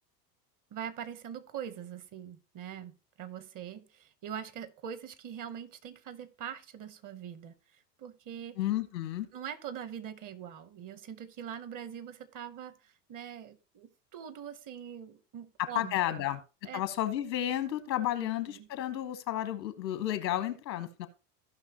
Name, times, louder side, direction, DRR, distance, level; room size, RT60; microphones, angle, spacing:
voice 1, 0.7-8.6 9.3-16.2 16.6-16.8 18.2-18.7, right 9 dB, 40° right, 15 dB, 1.0 m, -43 dB
voice 2, 8.6-9.3 15.6-16.4 16.7-21.1, left 12 dB, 90° left, 11 dB, 1.3 m, -32 dB
15.5 x 5.6 x 2.9 m, 0.32 s
hypercardioid pair, 95°, 49 cm